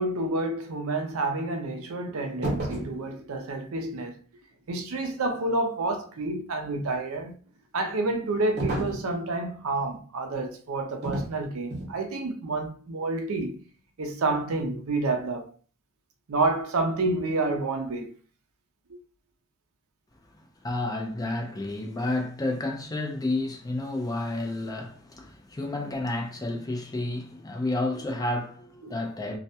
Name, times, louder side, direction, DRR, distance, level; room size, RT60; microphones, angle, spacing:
voice 1, 0.0-4.2 4.7-7.4 7.7-13.6 14.0-15.5 16.3-18.1 18.9-19.0 28.8-28.9, right 2 dB, 85° right, 0.5 m, -29 dB
sound 1, 2.4-3.0 8.6-9.1 11.0-11.3 11.7-12.0, right 1 dB, 50° right, 0.9 m, -30 dB
voice 2, 20.6-29.4, left 2 dB, 15° left, 0.4 m, -30 dB
2.3 x 2.1 x 2.7 m
head